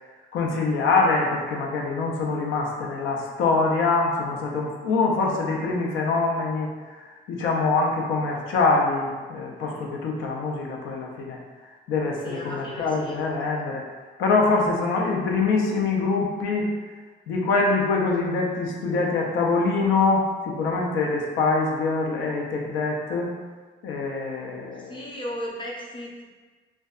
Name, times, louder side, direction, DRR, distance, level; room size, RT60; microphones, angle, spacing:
voice 1, 0.3-11.4 11.9-13.8 14.2-16.7 17.3-23.3 23.8-25.0, left 3 dB, 85° left, -1 dB, 0.5 m, -24 dB
voice 2, 12.2-13.2 24.8-26.3, equal, 25° left, -3 dB, 0.6 m, -35 dB
2.5 x 2.2 x 2.3 m, 1.4 s
cardioid pair, 90°, 20 cm